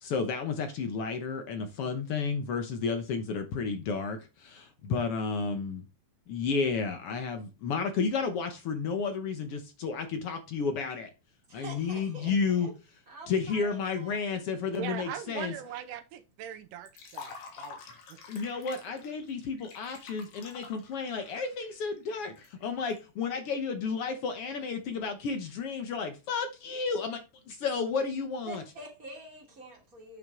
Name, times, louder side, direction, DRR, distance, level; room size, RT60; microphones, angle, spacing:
voice 1, 0.0-5.8 6.3-11.1 11.5-12.7 13.3-15.5 18.3-28.6, left 5 dB, 60° left, 1.6 m, -32 dB
voice 2, 11.5-12.7 13.1-14.4 28.5-30.2, right 2 dB, 25° right, 3.0 m, -46 dB
voice 3, 14.7-17.8 18.1-18.2, right 10 dB, 85° right, 2.3 m, -40 dB
Liquid, 16.9-23.0, left 5 dB, 85° left, 3.0 m, -48 dB
9.2 x 5.9 x 3.6 m
omnidirectional pair, 3.7 m